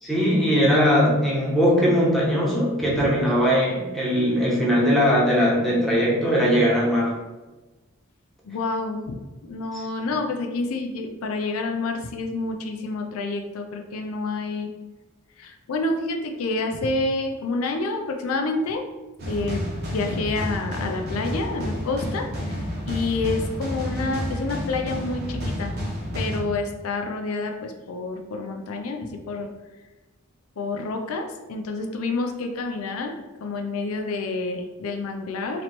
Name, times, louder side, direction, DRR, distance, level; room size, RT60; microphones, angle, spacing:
voice 1, 0.0-7.2 9.7-9.8, equal, ahead, -6 dB, 1.0 m, -20 dB
voice 2, 8.4-14.7 15.4-18.8 19.3-19.6 19.9-25.7 26.1-29.5 30.6-35.6, left 3 dB, 80° left, 3 dB, 0.4 m, -28 dB
sound 1, 19.2-26.4, equal, 50° right, 0.9 m, -30 dB
3.1 x 2.9 x 4.2 m, 1.1 s
head